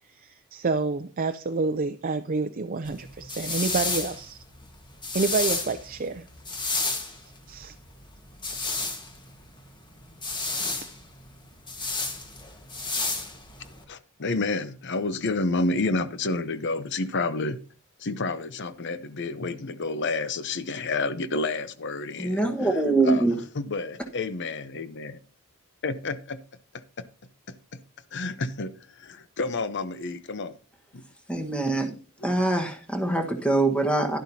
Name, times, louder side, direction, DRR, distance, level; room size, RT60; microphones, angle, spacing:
voice 1, 0.2-4.4 5.1-6.2 7.5-7.7, right 3 dB, 40° right, 0.5 m, -28 dB
sound 1, 2.8-13.8, left 3 dB, 20° left, 1.5 m, -32 dB
voice 2, 13.9-17.6 18.0-25.2 25.8-26.4 27.5-27.6 28.1-28.7 29.0-30.6 30.9-31.0 32.2-32.3, left 3 dB, 55° left, 0.8 m, -30 dB
voice 3, 22.2-23.3 31.3-31.9 32.2-34.2, right 2 dB, 5° left, 1.4 m, -24 dB
11.5 x 11.5 x 2.8 m
head